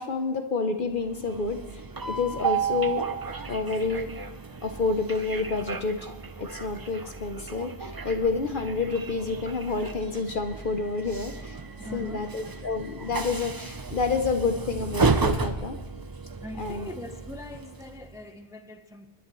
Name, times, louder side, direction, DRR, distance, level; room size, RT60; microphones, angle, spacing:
voice 1, 0.0-3.0 3.5-4.1 4.6-6.0 6.4-11.6 11.9-15.8 16.6-16.9, left 4 dB, 50° left, 6 dB, 0.9 m, -29 dB
Train, 0.9-18.2, right 4 dB, 35° right, 0.3 m, -33 dB
voice 2, 11.8-12.3 16.4-19.1, left 1 dB, 5° right, 6 dB, 0.8 m, -41 dB
29.5 x 10.5 x 3.1 m, 1.1 s
omnidirectional pair, 1.2 m